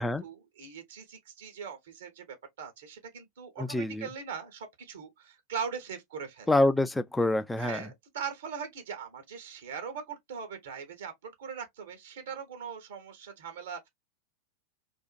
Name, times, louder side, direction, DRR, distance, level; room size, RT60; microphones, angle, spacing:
voice 1, 0.2-6.5 7.6-13.9, right 6 dB, 60° right, 0.8 m, -40 dB
voice 2, 3.6-4.1 6.5-7.9, left 1 dB, 5° left, 0.3 m, -26 dB
2.5 x 2.4 x 2.2 m
figure-of-eight pair, 90°, 0 cm